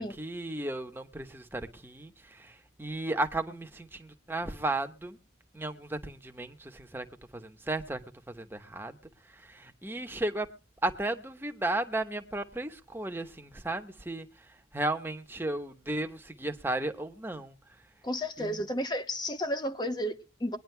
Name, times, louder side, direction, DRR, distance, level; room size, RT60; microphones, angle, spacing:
voice 1, 0.0-5.2 5.5-7.0 7.3-8.0 8.3-9.0 9.3-10.5 10.8-14.3 14.7-17.5 18.4-18.6, right 2 dB, 10° right, 1.1 m, -34 dB
voice 2, 18.0-20.6, equal, 25° left, 1.0 m, -32 dB
22.5 x 10.0 x 2.2 m
head